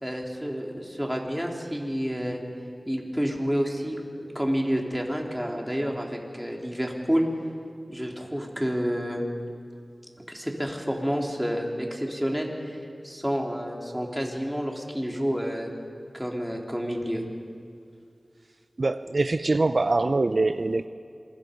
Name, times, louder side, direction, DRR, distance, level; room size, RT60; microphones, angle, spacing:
voice 1, 0.0-2.4 2.9-7.2 7.9-9.2 10.3-15.7 16.1-17.2, equal, 5° right, 0 dB, 3.4 m, -29 dB
voice 2, 18.8-20.9, right 2 dB, 60° right, 11 dB, 0.5 m, -23 dB
26.5 x 23.5 x 5.2 m, 2.3 s
wide cardioid pair, 60°, 0 cm